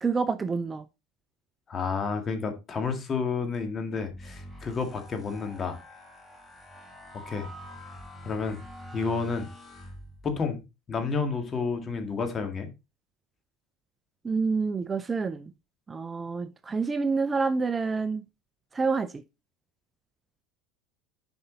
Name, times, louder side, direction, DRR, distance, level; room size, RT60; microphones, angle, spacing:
voice 1, 0.0-0.9 14.2-15.5 15.9-18.2 18.7-19.2, right 4 dB, 20° right, 0.5 m, -28 dB
voice 2, 1.7-5.8 7.1-7.5 8.2-8.6 8.9-9.5 10.2-10.6 10.9-12.7, left 5 dB, 30° left, 2.0 m, -30 dB
sound 1, 4.1-10.5, equal, 10° left, 4.0 m, -46 dB
7.8 x 5.4 x 4.0 m
supercardioid pair, 100°, 0 cm